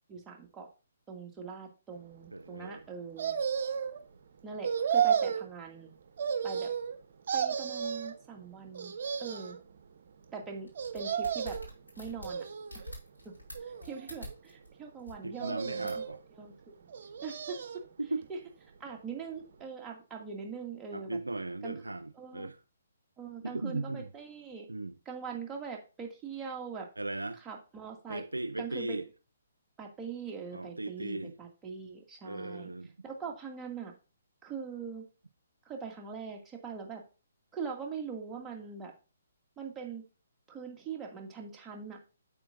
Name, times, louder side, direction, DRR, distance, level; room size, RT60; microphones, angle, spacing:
voice 1, 0.1-0.7 1.1-3.4 4.4-5.9 6.4-6.7 7.3-8.9 9.2-9.6 10.3-11.6 12.0-12.5 13.2-13.3 13.6-16.1 16.4-16.7 17.2-17.6 18.3-18.4 18.8-21.2 21.6-21.8 22.2-22.5 23.2-24.7 25.1-26.9 27.4-28.2 28.6-29.0 29.8-32.7 33.0-33.9 34.4-35.1 35.6-37.0 37.5-38.9 39.6-40.0 40.5-42.0, right 5 dB, 15° right, 2.3 m, -42 dB
voice 2, 2.3-2.8 15.2-16.2 18.0-18.2 20.9-22.6 23.4-24.1 24.7-25.0 27.0-27.4 28.1-29.1 30.5-31.4 32.2-32.9, right 2 dB, 80° right, 0.6 m, -37 dB
sound 1, 3.2-4.0 4.6-5.5 6.2-7.0 7.3-8.1 8.7-9.6 10.8-11.7 12.2-12.9 13.5-14.3 15.3-16.2 16.9-17.8 18.2-18.3, right 7 dB, 50° right, 1.0 m, -32 dB
sound 2, 10.7-14.7 15.0-15.1 15.9-16.1, equal, 85° left, 5.3 m, -45 dB
8.9 x 8.2 x 2.6 m
figure-of-eight pair, 130°, 0 cm